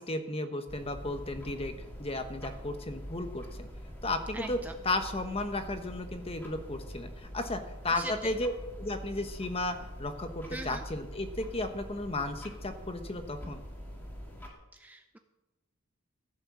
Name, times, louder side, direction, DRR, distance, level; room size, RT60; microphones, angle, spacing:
voice 1, 0.0-1.7 2.0-3.7 4.0-8.5 8.8-13.6, left 2 dB, 25° left, 7 dB, 1.1 m, -34 dB
sound 1, 0.7-14.5, equal, 10° left, 2.3 m, -44 dB
voice 2, 4.3-4.7 7.9-8.3 10.5-10.8 14.7-15.2, right 1 dB, 10° right, 6 dB, 0.5 m, -41 dB
15.0 x 6.6 x 7.5 m, 1.0 s
head